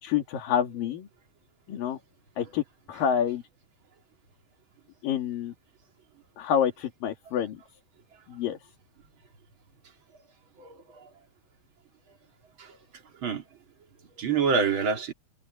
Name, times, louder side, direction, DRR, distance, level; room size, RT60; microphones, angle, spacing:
voice 1, 0.0-1.1 1.7-2.0 2.4-2.6 2.9-3.4 5.0-5.5 6.4-7.6 8.3-8.6, left 9 dB, 70° left, 3.8 m, -27 dB
voice 2, 10.6-11.0 12.6-12.8 13.2-13.4 14.2-15.1, right 5 dB, 35° right, 2.9 m, -27 dB
omnidirectional pair, 4.3 m